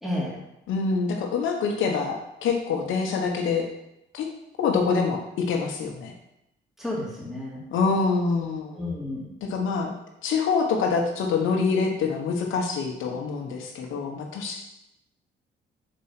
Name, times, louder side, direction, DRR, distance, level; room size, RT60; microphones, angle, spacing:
voice 1, 0.0-0.4 6.8-7.6 8.7-9.3, left 1 dB, ahead, -7 dB, 2.8 m, -31 dB
voice 2, 0.7-3.7 4.1-4.3 4.6-6.1 7.7-8.8 9.4-9.9 10.2-14.6, left 5 dB, 80° left, 2 dB, 1.2 m, -25 dB
5.3 x 4.4 x 5.8 m, 0.84 s
cardioid pair, 90°, 20 cm